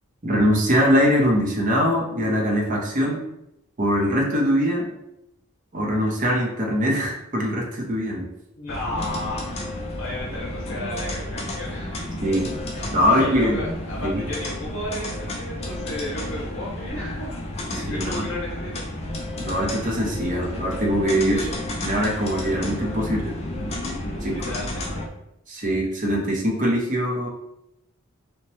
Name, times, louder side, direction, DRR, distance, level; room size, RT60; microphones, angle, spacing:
voice 1, 0.2-3.2 3.8-4.9 5.7-8.3 12.2-12.5 12.9-13.6 14.0-14.2 17.7-18.3 19.4-21.5 21.8-23.4 24.2-24.4 25.5-27.3, equal, 35° right, -1 dB, 0.6 m, -22 dB
voice 2, 8.6-12.0 13.0-17.3 17.7-18.8 21.3-21.6 24.2-25.0, left 1 dB, 55° left, -5 dB, 0.7 m, -33 dB
sound 1, 8.7-25.1, left 1 dB, 30° left, 0.4 m, -32 dB
2.8 x 2.1 x 3.0 m, 0.82 s
head